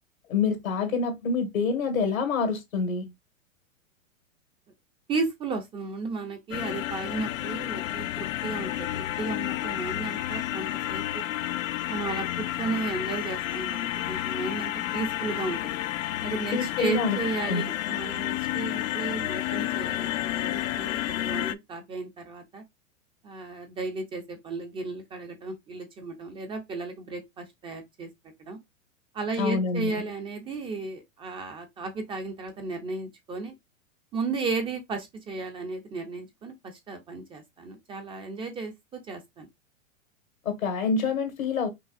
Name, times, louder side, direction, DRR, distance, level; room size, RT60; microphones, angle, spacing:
voice 1, 0.3-3.1 16.5-17.2 17.5-17.6 29.4-29.9 40.4-41.7, left 5 dB, 90° left, 1.6 m, -26 dB
voice 2, 5.1-11.3 11.9-15.8 16.2-22.6 23.2-28.1 28.4-28.6 29.1-33.5 34.1-39.5, right 3 dB, 15° right, 0.4 m, -34 dB
sound 1, 6.5-21.6, left 14 dB, 70° left, 0.5 m, -31 dB
5.3 x 2.7 x 2.4 m
hypercardioid pair, 125°, 40 cm